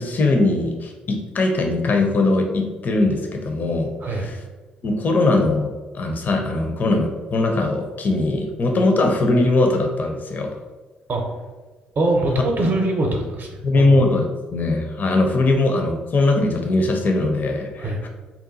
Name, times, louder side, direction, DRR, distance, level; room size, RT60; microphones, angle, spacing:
voice 1, 0.0-4.4 4.8-10.5 13.6-14.3 14.5-18.1, left 2 dB, 45° left, 3 dB, 0.5 m, -20 dB
voice 2, 12.0-14.0 17.8-18.0, right 2 dB, 45° right, 2 dB, 0.6 m, -23 dB
2.8 x 2.2 x 3.8 m, 1.2 s
hypercardioid pair, 45°, 4 cm